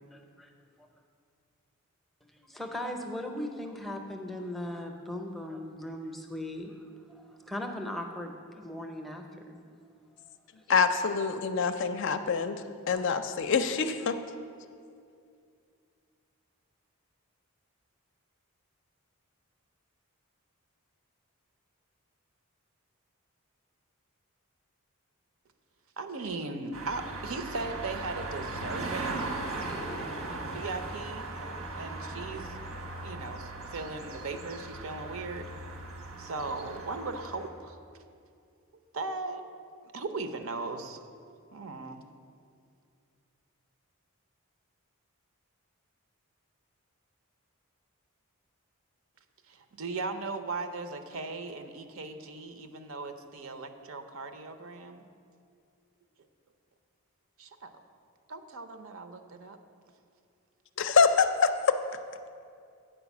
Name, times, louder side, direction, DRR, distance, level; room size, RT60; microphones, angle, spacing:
voice 1, 0.1-0.5 2.4-6.7 7.1-9.6, left 1 dB, ahead, 3 dB, 0.6 m, -38 dB
voice 2, 10.7-12.6 12.9-14.2 60.8-61.8, left 5 dB, 55° left, 9 dB, 0.4 m, -25 dB
voice 3, 26.0-29.3 30.4-32.6 33.0-35.5 36.2-37.8 38.9-39.4 39.9-41.0 41.5-42.0 49.5-55.0 57.4-57.7 58.3-59.6, right 3 dB, 65° right, 8 dB, 0.6 m, -38 dB
sound 1, 26.7-37.5, right 2 dB, 85° right, 1.3 m, -38 dB
8.9 x 4.9 x 7.1 m, 2.4 s
head